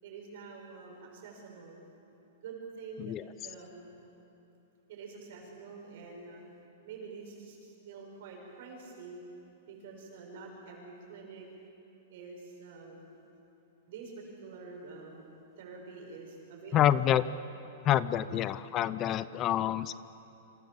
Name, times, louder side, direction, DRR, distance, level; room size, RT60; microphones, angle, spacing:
voice 1, 0.0-1.8 2.4-3.2 3.4-4.0 4.9-6.4 6.8-9.2 9.7-11.5 12.1-13.1 13.9-17.1 18.3-18.6, right 4 dB, 50° right, 0 dB, 6.9 m, -47 dB
voice 2, 16.7-17.2 17.8-20.0, left 12 dB, 20° left, 16 dB, 0.6 m, -27 dB
29.5 x 27.0 x 7.4 m, 2.8 s
supercardioid pair, 170°, 0 cm